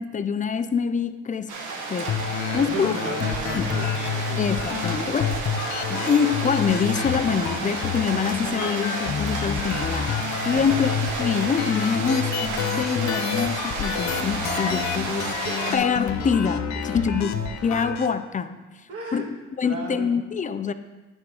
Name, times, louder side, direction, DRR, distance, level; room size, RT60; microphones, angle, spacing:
voice 1, 0.0-1.5 1.9-2.1 2.5-2.9 3.5-3.7 4.4-5.4 5.9-10.2 10.5-10.9 11.2-15.4 15.7-17.3 17.6-18.6 19.1-19.2 19.6-20.7, left 6 dB, 25° left, 11 dB, 0.4 m, -25 dB
sound 1, 1.5-15.8, right 3 dB, 80° right, 1.1 m, -31 dB
sound 2, 2.1-18.1, left 7 dB, 65° left, 0.6 m, -29 dB
voice 2, 2.5-4.4 10.5-10.9 15.5-15.6 16.9-17.5 18.9-19.3 19.6-20.2, right 3 dB, 50° right, -1 dB, 1.8 m, -35 dB
10.0 x 3.6 x 4.8 m, 1.2 s
cardioid pair, 90°, 30 cm